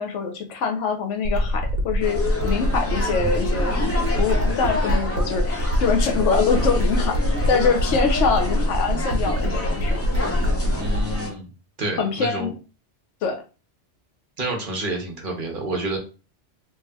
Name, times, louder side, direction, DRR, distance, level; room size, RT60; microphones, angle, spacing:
voice 1, 0.0-10.0 12.0-12.5 13.2-13.4, left 5 dB, 80° left, 4 dB, 1.0 m, -24 dB
sound 1, 1.2-11.2, equal, 80° right, 1.0 m, -23 dB
sound 2, 2.0-11.3, left 3 dB, 25° left, 0.3 m, -30 dB
voice 2, 10.7-11.5 11.8-12.5 14.4-16.0, right 2 dB, 50° right, 1 dB, 0.8 m, -29 dB
3.2 x 2.7 x 2.3 m, 0.33 s
omnidirectional pair, 1.2 m